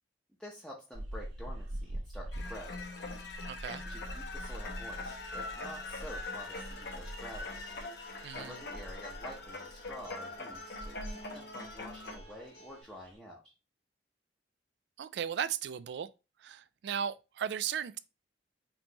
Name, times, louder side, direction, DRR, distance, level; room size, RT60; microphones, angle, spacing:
voice 1, 0.4-2.8 3.8-7.6 8.3-13.4, equal, 5° left, 0.7 m, -48 dB
sound 1, 0.9-13.2, right 1 dB, 90° right, 1.3 m, -45 dB
sound 2, 2.3-12.2, left 3 dB, 65° left, 0.8 m, -43 dB
voice 2, 3.5-3.8 8.2-8.6 15.0-16.1 16.4-18.0, right 8 dB, 65° right, 0.3 m, -36 dB
Acoustic guitar, 4.8-12.8, right 1 dB, 90° left, 2.3 m, -56 dB
5.3 x 3.0 x 2.8 m
head